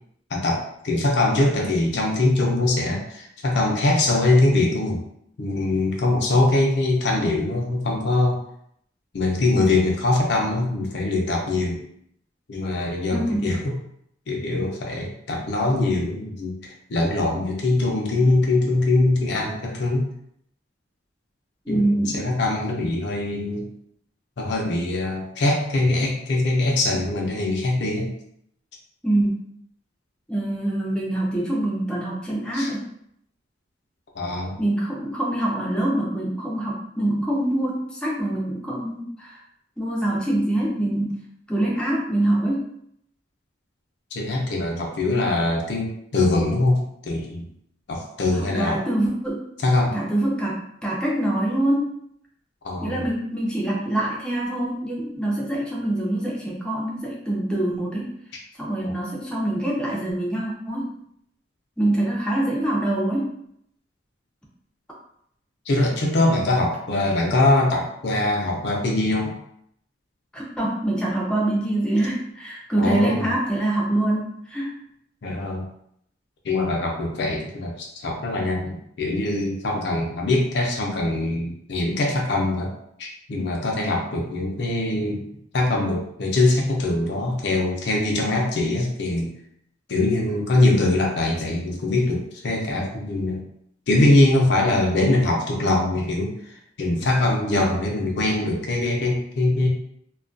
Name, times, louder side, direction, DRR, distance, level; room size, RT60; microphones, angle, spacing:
voice 1, 0.3-5.0 5.4-8.4 9.1-11.8 12.5-13.7 14.3-20.1 21.7-23.7 24.4-28.1 32.5-32.7 34.1-34.6 44.1-46.8 47.0-47.5 47.9-48.8 49.6-50.0 52.6-53.0 58.8-58.9 65.7-69.3 72.8-73.2 75.2-75.7 76.4-82.7 83.0-85.2 85.5-89.3 89.9-93.4 93.9-99.7, left 2 dB, 65° left, 0 dB, 0.5 m, -22 dB
voice 2, 13.1-13.5 21.7-22.3 29.0-29.4 30.3-32.9 34.6-39.4 39.8-41.2 41.5-42.7 48.3-49.5 49.9-51.9 52.8-58.2 58.6-60.9 61.8-63.4 70.3-74.8, right 1 dB, 5° left, -4 dB, 0.4 m, -25 dB
2.2 x 2.2 x 2.5 m, 0.72 s
head